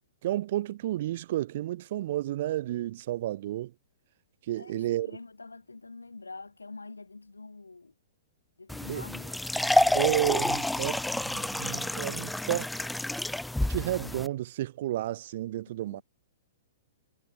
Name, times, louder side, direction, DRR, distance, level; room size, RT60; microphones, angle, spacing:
voice 1, 0.2-3.7 4.5-5.1 8.9-9.0 9.9-12.7 13.6-16.0, right 14 dB, 55° right, 1.0 m, -31 dB
voice 2, 4.5-7.9 8.6-9.3 9.7-10.1 10.4-10.7 15.9-16.0, left 3 dB, 90° left, 4.7 m, -46 dB
sound 1, 8.7-14.3, left 1 dB, 5° left, 0.5 m, -29 dB
figure-of-eight pair, 115°, 0 cm